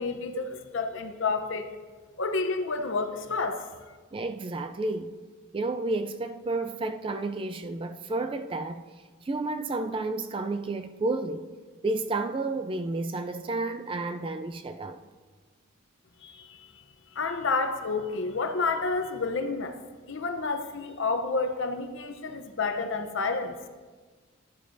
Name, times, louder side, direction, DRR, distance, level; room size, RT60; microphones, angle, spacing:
voice 1, 0.0-1.7 2.2-3.7 16.2-16.7 17.1-19.8 20.1-23.6, left 4 dB, 60° left, 0.8 m, -30 dB
voice 2, 4.1-5.1 5.5-8.8 9.2-11.5 11.8-15.0, right 2 dB, 25° right, 0.3 m, -31 dB
11.5 x 11.0 x 2.6 m
head